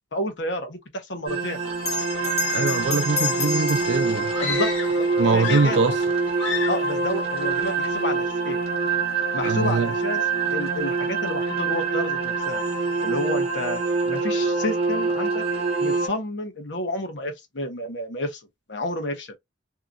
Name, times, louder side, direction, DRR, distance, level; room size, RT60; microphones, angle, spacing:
voice 1, 0.1-1.6 4.4-6.0 6.7-8.6 9.3-10.2 10.5-12.6 13.0-13.8 14.0-15.4 15.8-19.3, left 1 dB, 65° left, 0.9 m, -30 dB
sound 1, 1.3-16.1, right 4 dB, 30° right, 0.9 m, -25 dB
Bell, 1.8-6.7, left 4 dB, 35° left, 1.2 m, -31 dB
voice 2, 2.5-4.3 5.2-6.0 9.4-9.9, right 4 dB, 70° right, 0.4 m, -22 dB
sound 2, 4.3-5.1 5.3-6.1 6.4-6.9, left 5 dB, 85° left, 1.3 m, -30 dB
2.8 x 2.4 x 2.5 m
head